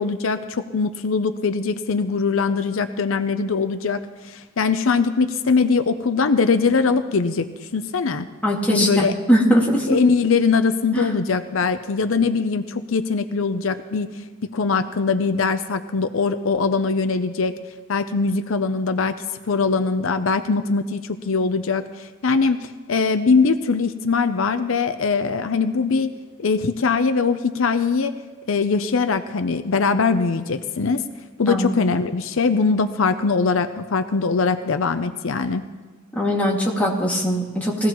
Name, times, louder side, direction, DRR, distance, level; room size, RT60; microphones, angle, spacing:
voice 1, 0.0-7.5 7.7-8.3 8.7-9.1 9.9-14.2 14.5-17.5 17.9-26.1 26.4-28.1 28.5-31.0 31.4-35.6, left 4 dB, 75° left, 10 dB, 0.6 m, -21 dB
voice 2, 8.4-9.9 10.9-11.1 31.5-31.7 36.1-37.9, equal, 5° left, -4 dB, 2.2 m, -20 dB
20.5 x 16.0 x 3.1 m, 1.4 s
head